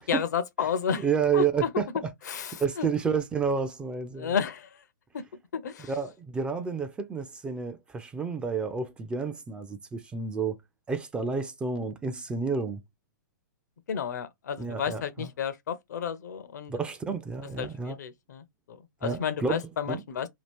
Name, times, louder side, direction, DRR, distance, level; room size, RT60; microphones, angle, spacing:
voice 1, 0.0-1.1 1.3-1.7 2.3-2.9 4.2-4.8 5.1-5.2 5.5-5.9 13.9-16.8 17.6-20.3, left 7 dB, 60° left, 0.6 m, -32 dB
voice 2, 1.0-1.9 2.6-4.3 5.9-10.5 10.9-12.8 14.6-15.3 16.7-18.0 19.0-19.6 19.9-20.0, right 5 dB, 10° right, 0.4 m, -30 dB
2.8 x 2.4 x 3.5 m
figure-of-eight pair, 120°, 11 cm